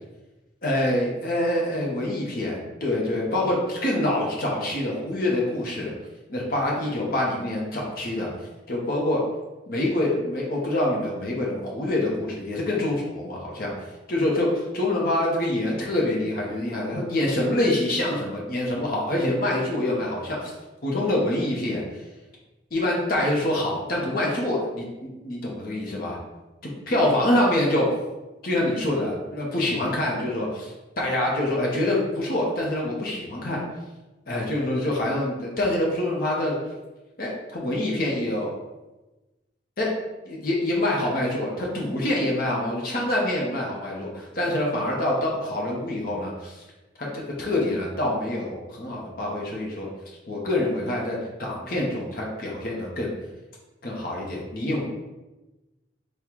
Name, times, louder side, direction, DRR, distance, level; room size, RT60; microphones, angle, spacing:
voice 1, 0.6-5.9 6.3-8.3 8.7-9.2 9.7-13.7 14.1-20.5 20.8-22.0 22.7-26.2 26.9-27.9 28.4-33.6 34.3-36.6 37.2-38.5 39.8-39.9 40.2-46.6 47.0-49.9 50.3-53.1 53.8-54.8, left 1 dB, 50° left, -3 dB, 0.7 m, -26 dB
3.7 x 2.2 x 4.5 m, 1.1 s
head